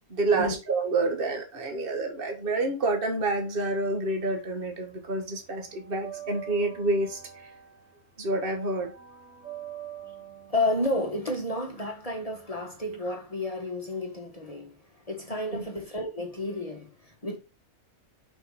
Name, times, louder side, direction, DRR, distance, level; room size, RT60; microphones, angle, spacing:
voice 1, 0.1-7.5 8.2-8.9 15.5-15.6, right 2 dB, 40° right, 1.9 m, -28 dB
sound 1, 3.8-4.8 5.0-13.0, right 10 dB, 75° right, 3.1 m, -45 dB
voice 2, 10.5-14.8 15.0-17.4, left 1 dB, 25° left, 1.4 m, -31 dB
6.2 x 5.9 x 4.8 m
omnidirectional pair, 1.5 m